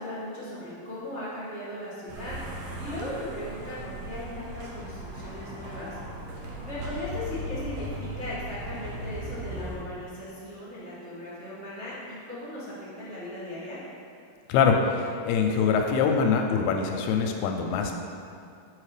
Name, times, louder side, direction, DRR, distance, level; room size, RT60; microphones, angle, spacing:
voice 1, 0.0-2.3 2.8-6.0 6.6-13.8, left 1 dB, 90° right, -10 dB, 0.6 m, -37 dB
sound 1, 2.1-9.8, right 1 dB, 65° right, 2.2 m, -37 dB
voice 2, 14.5-18.0, left 5 dB, 80° left, 3 dB, 2.4 m, -24 dB
7.9 x 5.8 x 4.9 m, 2.4 s
omnidirectional pair, 4.7 m